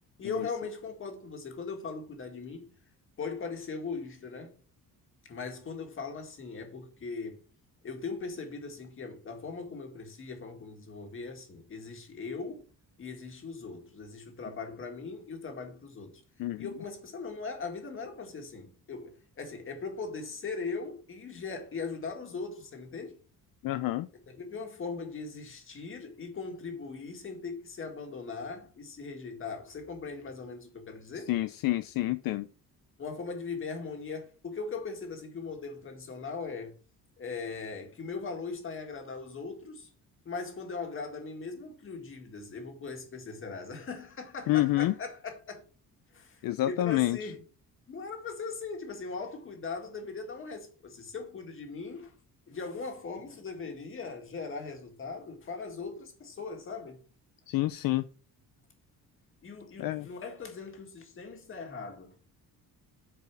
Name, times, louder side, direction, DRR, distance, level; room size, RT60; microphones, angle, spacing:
voice 1, 0.2-2.8 3.2-4.6 5.3-7.4 7.8-12.6 13.0-16.2 16.6-23.2 24.3-31.3 33.0-36.7 37.2-39.9 40.3-45.6 46.1-47.4 47.9-52.1 52.5-57.0 59.4-62.2, left 4 dB, 35° left, 1.9 m, -39 dB
voice 2, 16.4-16.7 23.6-24.1 31.2-32.5 44.5-45.0 46.4-47.3 57.5-58.1 59.8-60.1, left 16 dB, 70° left, 0.5 m, -28 dB
8.3 x 4.8 x 6.1 m
cardioid pair, 165°, 36 cm